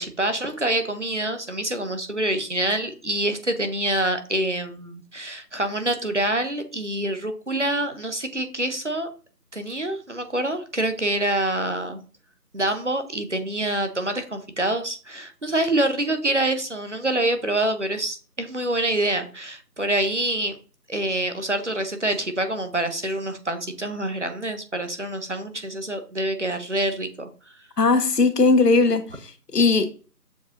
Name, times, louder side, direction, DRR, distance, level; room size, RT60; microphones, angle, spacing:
voice 1, 0.0-9.1 9.5-12.0 12.5-20.5 20.9-27.3, right 1 dB, 50° right, 8 dB, 0.6 m, -26 dB
voice 2, 27.8-29.8, left 3 dB, 75° left, 9 dB, 0.9 m, -19 dB
7.0 x 2.5 x 2.7 m, 0.37 s
figure-of-eight pair, 180°, 48 cm